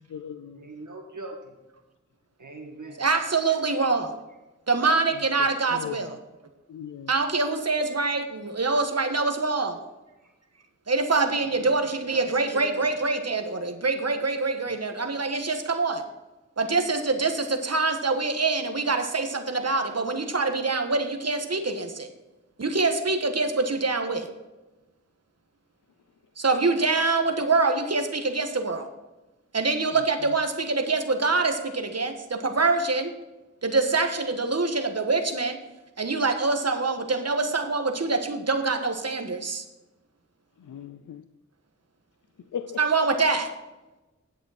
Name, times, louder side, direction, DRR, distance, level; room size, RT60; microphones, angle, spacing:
voice 1, 0.0-0.7 5.1-6.1 6.7-7.1 40.6-41.3 42.5-42.8, left 8 dB, 80° left, 10 dB, 0.5 m, -38 dB
voice 2, 0.5-1.5 2.4-3.0 11.5-12.2 12.5-12.8, right 2 dB, 75° right, -1 dB, 2.1 m, -41 dB
voice 3, 3.0-4.1 4.7-6.1 7.1-9.8 10.9-16.0 16.6-22.1 22.6-24.3 26.4-28.9 29.5-33.1 33.6-35.6 36.0-39.6 42.8-43.5, right 3 dB, 55° right, 5 dB, 1.4 m, -25 dB
10.0 x 8.1 x 4.2 m, 1.1 s
cardioid pair, 45°, 30 cm